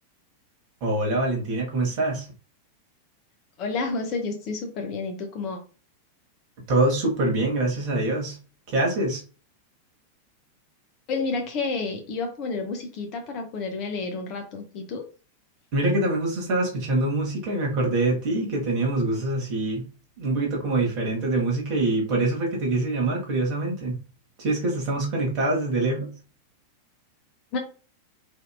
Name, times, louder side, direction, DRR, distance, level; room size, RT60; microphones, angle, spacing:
voice 1, 0.8-2.2 6.7-8.3 8.7-9.2 15.7-19.8 20.2-24.0 24.4-26.1, right 2 dB, 45° right, -1 dB, 1.4 m, -24 dB
voice 2, 3.6-5.6 11.1-15.0 27.5-27.6, left 4 dB, 40° left, 4 dB, 0.8 m, -30 dB
3.5 x 2.8 x 2.4 m, 0.35 s
figure-of-eight pair, 90°, 0 cm